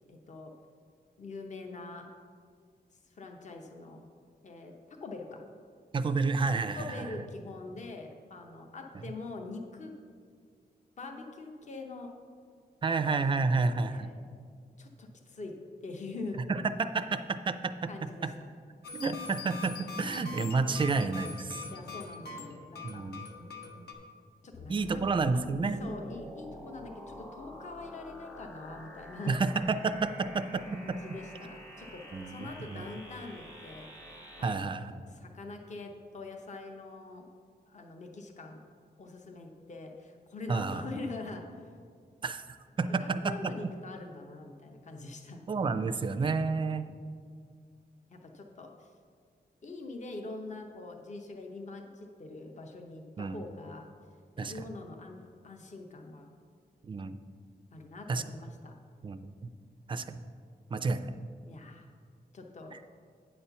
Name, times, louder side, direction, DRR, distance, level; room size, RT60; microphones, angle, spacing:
voice 1, 0.1-0.5 1.2-2.1 3.1-4.0 4.4-4.7 5.0-5.4 6.7-9.9 11.0-12.1 13.4-14.2 14.8-15.6 15.8-16.4 17.9-18.5 21.7-23.0 24.4-25.0 25.8-29.4 30.8-33.9 34.4-34.7 35.1-37.3 37.7-38.6 39.0-41.4 43.0-45.4 48.1-48.7 49.6-53.9 54.4-55.2 55.4-56.4 57.7-58.7 61.4-61.9 62.3-62.9, left 3 dB, 45° left, 3 dB, 0.7 m, -44 dB
voice 2, 5.9-7.1 12.8-14.1 16.5-17.9 18.2-18.3 18.9-21.6 22.8-23.3 24.7-25.8 29.3-31.0 32.1-32.9 34.4-35.0 40.5-40.8 42.2-43.3 45.5-46.9 53.2-53.4 54.4-54.5 56.8-57.2 58.1-58.2 59.0-59.5 59.9-60.2 60.7-61.1 62.7-62.8, right 4 dB, 30° right, 10 dB, 0.4 m, -30 dB
sound 1, 18.8-23.9, left 4 dB, 70° left, 1.0 m, -43 dB
sound 2, 24.5-34.5, equal, 20° left, 0.9 m, -48 dB
8.8 x 4.3 x 6.8 m, 2.1 s
wide cardioid pair, 165°, 17 cm